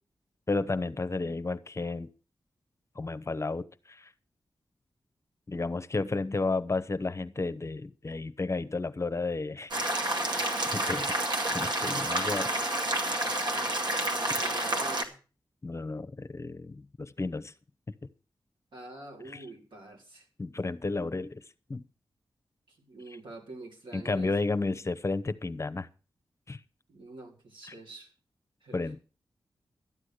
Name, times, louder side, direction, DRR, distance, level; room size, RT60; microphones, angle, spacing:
voice 1, 0.5-2.1 2.9-4.1 5.5-10.0 10.6-11.2 11.5-12.5 15.6-17.5 19.2-19.5 20.4-21.4 21.7-21.8 23.1-23.2 23.9-25.9 26.5-26.6 27.7-27.8 28.7-29.0, left 3 dB, 35° left, 15 dB, 0.8 m, -32 dB
sound 1, 9.7-15.0, right 1 dB, 65° right, 2.1 m, -29 dB
voice 2, 14.3-15.2 18.7-20.3 22.7-24.3 26.9-28.1 28.6-28.8, right 2 dB, 80° right, -1 dB, 4.3 m, -46 dB
12.5 x 8.3 x 6.4 m, 0.36 s
cardioid pair, 60°, 8 cm